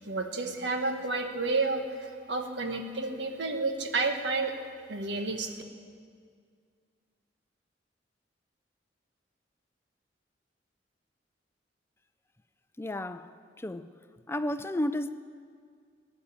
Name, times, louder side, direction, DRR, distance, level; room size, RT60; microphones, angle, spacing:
voice 1, 0.1-4.5 4.9-5.5, right 3 dB, 85° right, 1.5 m, -30 dB
voice 2, 12.8-13.2 13.6-13.8 14.3-15.1, left 1 dB, 15° left, 0.4 m, -31 dB
19.5 x 9.9 x 7.2 m
head